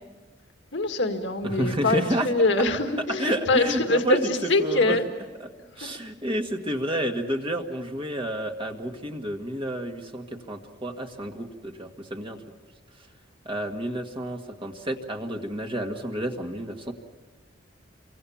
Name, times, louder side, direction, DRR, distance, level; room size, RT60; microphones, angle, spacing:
voice 1, 0.7-5.1 5.8-5.9, left 2 dB, 65° left, 5 dB, 1.9 m, -24 dB
voice 2, 1.4-2.3 3.2-4.3 4.6-5.0 5.4-5.5 5.8-12.4 13.5-16.9, equal, 25° right, 3 dB, 1.8 m, -30 dB
28.5 x 24.5 x 7.2 m, 1.4 s
head